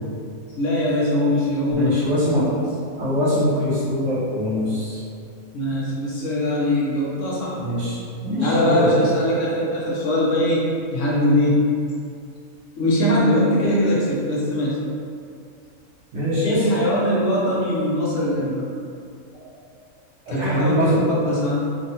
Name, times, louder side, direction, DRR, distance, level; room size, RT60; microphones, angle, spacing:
voice 1, 0.5-2.6 5.5-7.6 8.4-11.6 12.8-14.8 16.4-18.7 20.3-21.6, left 1 dB, 65° left, -5 dB, 0.8 m, -21 dB
voice 2, 1.7-2.5 3.0-5.0 7.5-8.0 8.2-8.9 16.1-16.6 20.3-21.0, left 1 dB, 65° right, -12 dB, 1.2 m, -23 dB
3.4 x 2.2 x 2.7 m, 2.4 s
omnidirectional pair, 1.5 m